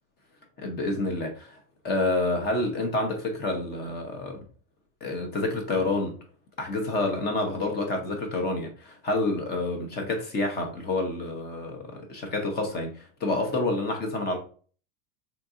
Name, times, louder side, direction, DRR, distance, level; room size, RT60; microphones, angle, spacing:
voice 1, 0.6-1.6 1.8-4.4 5.0-6.2 6.6-14.4, left 2 dB, 25° left, 0.5 m, -28 dB
3.7 x 2.8 x 2.4 m
supercardioid pair, 135°, 45 cm